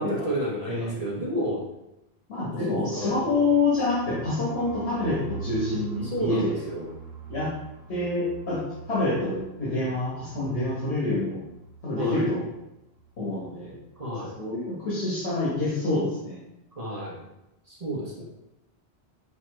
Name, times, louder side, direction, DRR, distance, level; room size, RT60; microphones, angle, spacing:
voice 1, 0.0-1.6 2.7-3.5 6.0-6.9 11.9-12.3 14.0-14.4 16.8-17.2 17.7-18.2, equal, 40° right, -5 dB, 0.9 m, -31 dB
voice 2, 2.3-6.6 7.3-7.5 7.9-8.6 8.9-11.4 11.8-12.4 13.2-13.8 14.3-16.4, left 2 dB, 80° left, -9 dB, 1.6 m, -27 dB
sound 1, 3.2-12.7 12.9-13.1 13.3-13.8, right 3 dB, 75° right, 1.4 m, -42 dB
6.2 x 2.8 x 3.1 m, 0.89 s
omnidirectional pair, 1.1 m